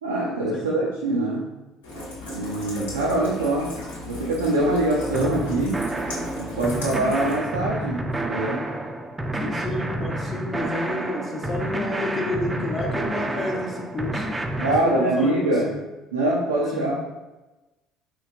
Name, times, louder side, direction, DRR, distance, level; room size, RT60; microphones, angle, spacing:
voice 1, 0.0-1.5 2.3-3.7 4.1-5.9 6.4-8.7 14.6-15.7 16.1-17.0, right 2 dB, 85° right, -4 dB, 0.4 m, -24 dB
Rain, 1.8-7.4, left 2 dB, 85° left, 0.9 m, -36 dB
sound 1, 5.1-14.8, right 1 dB, 20° right, 0.4 m, -29 dB
voice 2, 9.4-15.8 16.7-17.0, left 2 dB, 40° left, -3 dB, 0.7 m, -30 dB
4.1 x 3.0 x 2.4 m, 1.1 s
figure-of-eight pair, 55°, 0 cm